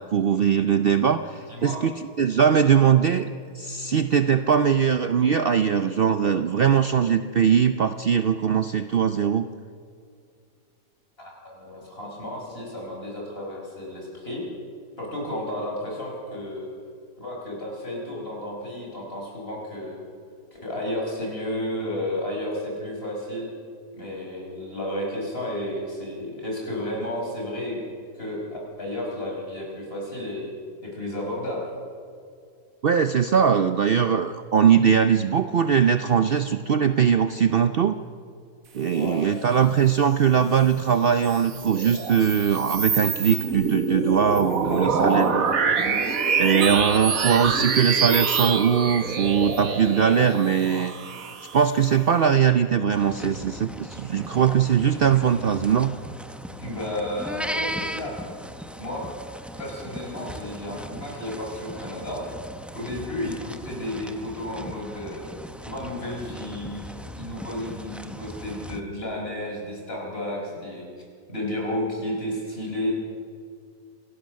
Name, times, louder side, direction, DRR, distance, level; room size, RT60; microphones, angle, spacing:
voice 1, 0.0-3.3 3.5-9.5 32.8-38.0 38.7-45.4 46.4-50.9 51.5-55.9, right 7 dB, 75° right, 10 dB, 0.5 m, -21 dB
voice 2, 1.5-1.8 11.2-14.4 15.0-16.7 17.2-20.0 20.5-23.5 23.9-27.8 28.1-30.5 30.8-31.7 38.9-39.2 44.5-45.7 56.6-58.2 58.8-59.0 59.6-62.3 62.7-65.3 65.6-66.8 67.1-70.9 71.3-72.9, left 1 dB, 35° left, -2 dB, 5.7 m, -32 dB
sound 1, 41.1-52.0, right 5 dB, 55° right, 1.7 m, -26 dB
sound 2, 52.9-68.8, equal, ahead, 0.4 m, -38 dB
27.0 x 17.5 x 6.4 m, 2.2 s
omnidirectional pair, 1.8 m